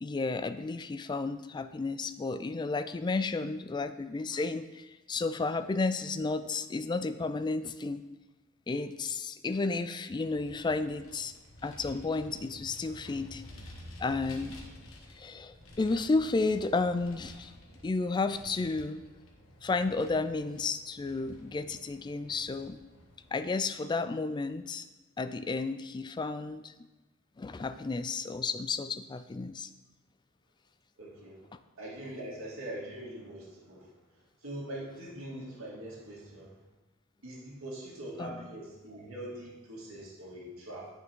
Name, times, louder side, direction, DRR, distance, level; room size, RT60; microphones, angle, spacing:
voice 1, 0.0-8.0 8.7-11.3 11.6-13.4 14.0-14.6 15.2-17.5 17.8-19.0 19.6-22.8 23.3-24.8 25.2-26.7 27.4-29.7 38.2-38.5, left 3 dB, 20° left, 11 dB, 0.3 m, -32 dB
Vehicle, 10.2-23.4, left 1 dB, 70° left, 1.3 m, -51 dB
voice 2, 31.0-31.5 31.8-34.0 34.4-36.5 37.2-40.9, right 1 dB, 75° right, -4 dB, 2.4 m, -42 dB
9.2 x 6.0 x 3.7 m, 1.1 s
head